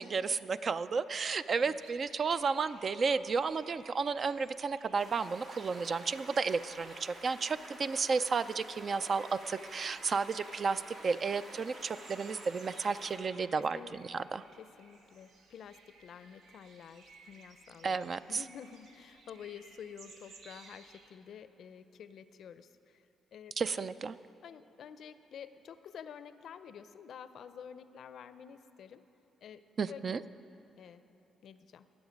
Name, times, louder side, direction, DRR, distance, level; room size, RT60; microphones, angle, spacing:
voice 1, 0.0-14.4 17.8-18.4 23.6-24.2 29.8-30.2, right 5 dB, 45° right, 14 dB, 0.3 m, -32 dB
sound 1, 1.5-21.1, right 3 dB, 80° right, 1.0 m, -59 dB
sound 2, 4.9-13.2, right 1 dB, 65° right, 2.1 m, -50 dB
voice 2, 13.6-14.0 14.6-23.9 24.4-29.0 29.4-29.6 29.9-30.0 30.8-31.0 31.4-31.9, left 8 dB, 65° left, 12 dB, 0.5 m, -50 dB
19.5 x 7.1 x 5.2 m, 3.0 s
cardioid pair, 90°, 0 cm